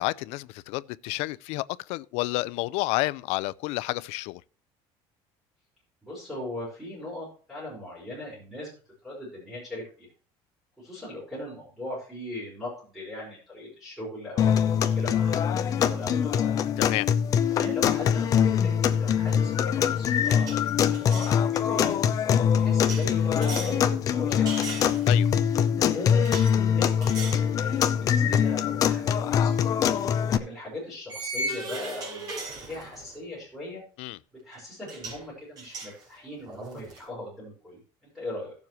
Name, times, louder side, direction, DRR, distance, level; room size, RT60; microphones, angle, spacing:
voice 1, 0.0-4.4 16.8-17.1 25.1-25.3 34.0-34.2, left 20 dB, 75° left, 0.4 m, -30 dB
voice 2, 6.0-8.7 9.0-10.1 10.8-16.5 17.5-21.0 21.2-22.0 22.5-24.8 25.8-26.3 26.6-29.6 30.4-33.8 34.4-38.5, left 1 dB, ahead, 4.9 m, -39 dB
sound 1, 14.4-30.4, left 8 dB, 35° left, 0.6 m, -23 dB
sound 2, 19.3-19.5 19.8-21.4 22.8-23.8 24.5-25.3 26.2-26.5 27.0-27.5 27.9-28.1 29.6-29.7 31.1-33.2 34.5-34.6 34.9-35.2 35.6-37.0, right 2 dB, 35° right, 5.8 m, -37 dB
17.0 x 7.2 x 3.1 m
cardioid pair, 180°, 11 cm